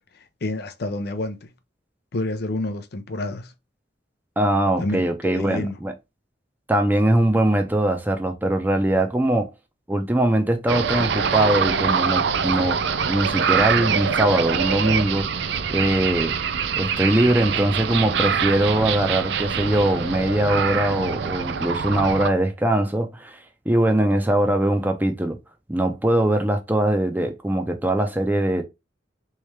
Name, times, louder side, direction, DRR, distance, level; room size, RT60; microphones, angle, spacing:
voice 1, 0.4-1.5 2.1-3.5 4.8-5.8, left 1 dB, 60° left, 0.6 m, -28 dB
voice 2, 4.4-5.9 6.7-9.5 9.9-12.8 13.1-15.3 15.7-16.4 16.8-23.4 23.7-25.4 25.7-28.6, right 1 dB, 10° right, 0.7 m, -21 dB
sound 1, 10.7-22.3, right 6 dB, 70° right, 0.4 m, -24 dB
3.4 x 3.2 x 3.2 m
head